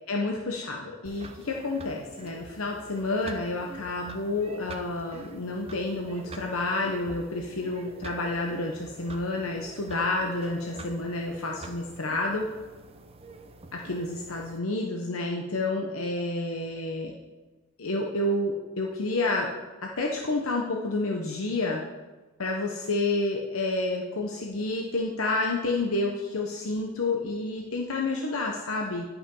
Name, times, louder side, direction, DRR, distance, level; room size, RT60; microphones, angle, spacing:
voice 1, 0.1-12.5 13.7-17.1 17.8-19.5 19.8-21.8 22.4-29.1, left 2 dB, 80° left, 0 dB, 1.0 m, -29 dB
sound 1, 1.0-14.6, right 2 dB, 30° right, 0.7 m, -46 dB
11.0 x 5.9 x 5.4 m, 1.2 s
head